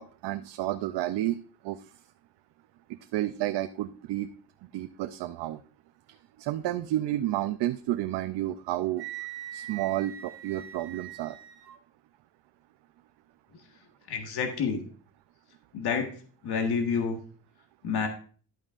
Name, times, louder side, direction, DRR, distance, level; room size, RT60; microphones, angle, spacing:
voice 1, 0.0-1.9 2.9-4.3 4.7-5.6 6.4-9.0 9.5-11.4, right 14 dB, 85° right, 9 dB, 0.6 m, -31 dB
Wind instrument woodwind instrument, 9.0-11.8, right 12 dB, 65° right, 1.7 m, -42 dB
voice 2, 14.1-14.8 15.7-16.1 16.4-17.2 17.8-18.1, left 5 dB, 70° left, 3 dB, 1.6 m, -28 dB
11.5 x 8.8 x 2.5 m, 0.42 s
cardioid pair, 135°, 40 cm